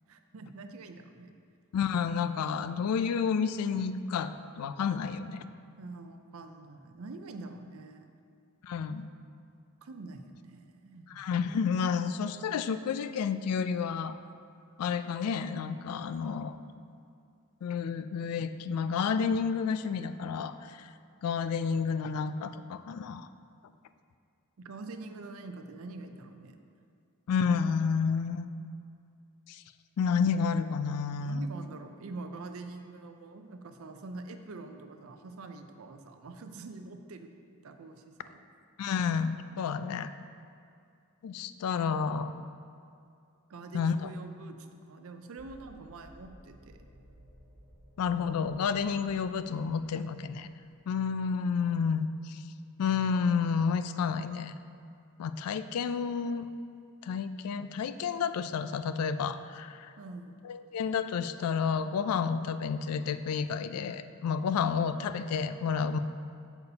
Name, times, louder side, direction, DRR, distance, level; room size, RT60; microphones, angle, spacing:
voice 1, 0.1-1.3 5.8-8.1 9.8-11.2 24.6-26.6 31.2-38.4 43.5-44.6 44.8-46.9 60.0-60.3 64.6-64.7, right 3 dB, 65° right, 7 dB, 0.5 m, -45 dB
voice 2, 1.7-5.5 8.6-9.1 11.1-14.1 14.8-16.6 17.6-20.9 21.2-23.3 27.3-28.5 29.5-29.6 30.0-31.5 38.8-40.1 41.2-42.4 43.7-44.1 48.0-50.5 50.9-52.4 52.8-54.5 55.2-56.5 57.0-59.9 60.4-66.0, left 6 dB, 80° left, 12 dB, 0.3 m, -30 dB
sound 1, 45.4-50.8, equal, 10° right, 1.1 m, -57 dB
8.1 x 6.9 x 2.8 m, 2.4 s
head